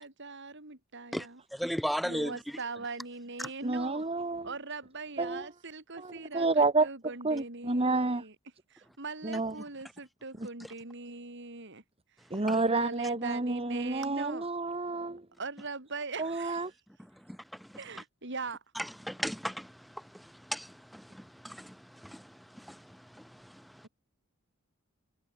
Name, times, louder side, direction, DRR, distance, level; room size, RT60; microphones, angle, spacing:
voice 1, 0.0-1.4 2.0-4.0 4.4-8.4 8.7-11.8 12.4-14.5 15.4-16.7 17.8-18.6, right 3 dB, 60° right, 4.1 m, -41 dB
voice 2, 1.5-2.4 12.5-12.6 17.3-17.7 18.8-23.8, equal, ahead, 1.8 m, -37 dB
voice 3, 3.6-4.5 5.2-5.5 6.0-6.9 7.2-8.2 9.2-9.5 12.3-15.2 16.2-16.7, right 3 dB, 30° right, 1.5 m, -29 dB
head